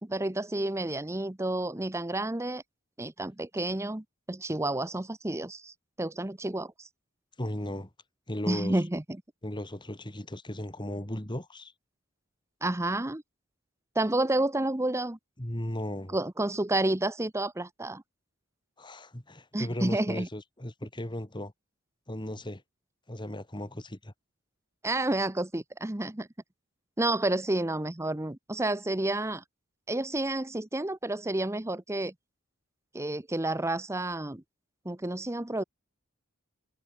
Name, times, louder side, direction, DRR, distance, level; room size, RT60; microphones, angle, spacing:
voice 1, 0.0-2.6 3.0-6.9 8.5-9.0 12.6-13.2 13.9-15.2 16.1-18.0 19.5-20.3 24.8-26.3 27.0-29.4 29.9-32.1 32.9-34.4 34.8-35.6, right 1 dB, 15° right, 0.8 m, -30 dB
voice 2, 7.4-7.9 8.3-8.8 9.4-11.7 15.4-16.2 18.8-21.5 22.1-22.6 23.1-24.1, left 1 dB, 20° left, 2.6 m, -36 dB
head